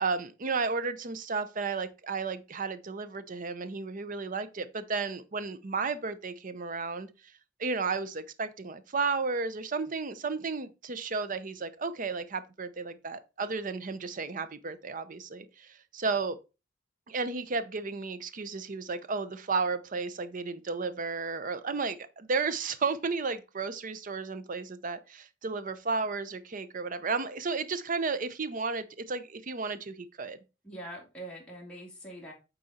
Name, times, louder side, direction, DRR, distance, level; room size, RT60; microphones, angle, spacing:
voice 1, 0.0-7.1 7.6-16.4 17.1-30.4, right 4 dB, 45° right, 0.6 m, -33 dB
voice 2, 30.6-32.3, right 1 dB, 5° left, 2.5 m, -43 dB
8.6 x 4.1 x 4.2 m
head